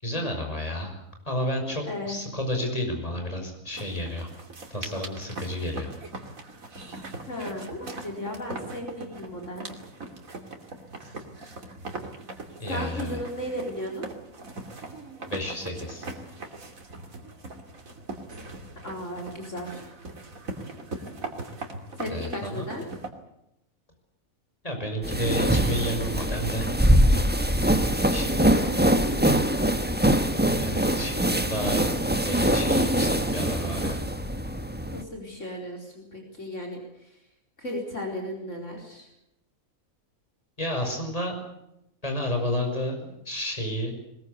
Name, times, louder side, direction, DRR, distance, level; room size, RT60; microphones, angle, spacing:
voice 1, 0.0-0.9 1.3-4.3 4.7-5.9 12.6-13.2 15.3-16.1 22.1-22.7 24.6-26.7 28.1-28.6 30.6-31.9 32.2-34.0 40.6-41.3 42.0-43.9, equal, 25° left, 4 dB, 5.9 m, -31 dB
voice 2, 1.9-2.2 7.1-9.6 12.7-14.1 18.8-19.9 22.0-22.8 28.3-29.4 34.9-37.2 37.6-39.1, left 1 dB, 60° left, 1 dB, 4.7 m, -35 dB
sound 1, 3.7-23.1, right 2 dB, 70° right, 3.2 m, -40 dB
sound 2, 25.0-35.0, right 1 dB, 5° right, 1.2 m, -23 dB
21.0 x 21.0 x 8.3 m, 0.84 s
omnidirectional pair, 1.5 m